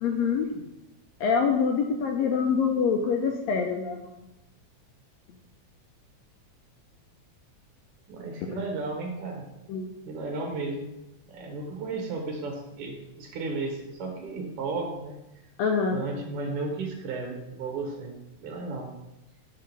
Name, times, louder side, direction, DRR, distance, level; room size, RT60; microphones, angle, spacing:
voice 1, 0.0-0.5 1.2-4.2 9.7-9.9 15.6-16.0, left 6 dB, 80° left, 2 dB, 1.7 m, -25 dB
voice 2, 8.1-9.5 10.1-10.9 11.3-15.2 15.9-19.0, right 3 dB, 60° right, 2 dB, 1.8 m, -34 dB
5.8 x 3.6 x 5.9 m, 0.92 s
omnidirectional pair, 3.4 m